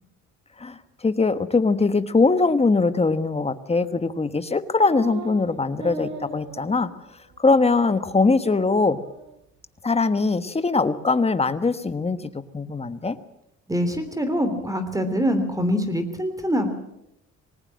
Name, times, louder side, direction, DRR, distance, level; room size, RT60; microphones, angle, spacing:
voice 1, 0.6-6.9 7.4-9.0 9.8-13.2, left 3 dB, 20° left, 11 dB, 1.3 m, -22 dB
sound 1, 4.8-5.4 5.8-7.0 7.3-7.4 7.8-8.2 8.4-9.3, right 2 dB, 75° right, 6.3 m, -38 dB
voice 2, 13.7-16.7, equal, 10° right, 9 dB, 3.1 m, -24 dB
20.0 x 19.0 x 7.6 m, 0.82 s
cardioid pair, 90°, 30 cm